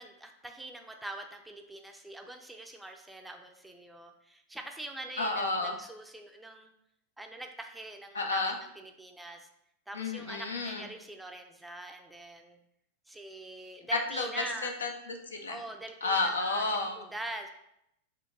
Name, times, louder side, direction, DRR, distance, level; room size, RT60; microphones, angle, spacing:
voice 1, 0.0-6.7 7.2-9.5 9.9-12.6 13.1-14.7 15.5-16.7 16.9-17.5, right 1 dB, 5° right, 4 dB, 0.4 m, -44 dB
voice 2, 5.2-5.7 8.1-8.6 9.9-10.8 13.9-15.6 16.0-17.0, left 3 dB, 75° left, 3 dB, 0.6 m, -31 dB
4.5 x 2.5 x 3.6 m, 0.78 s
figure-of-eight pair, 90°, 0 cm